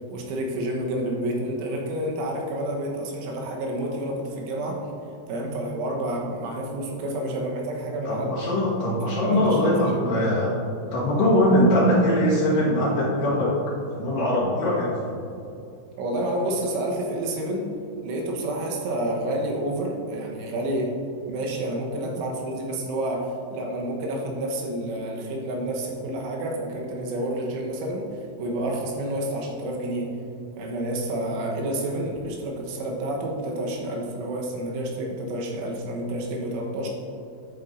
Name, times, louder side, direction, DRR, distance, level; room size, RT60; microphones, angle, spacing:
voice 1, 0.1-4.8 5.3-8.3 9.2-10.1 16.0-17.7 18.0-21.0 21.3-30.1 30.6-36.9, right 1 dB, 85° right, -1 dB, 3.5 m, -29 dB
voice 2, 8.1-10.5 10.9-13.5 14.0-15.1, left 1 dB, 60° left, -7 dB, 2.7 m, -21 dB
11.0 x 8.6 x 2.6 m, 2.6 s
omnidirectional pair, 5.5 m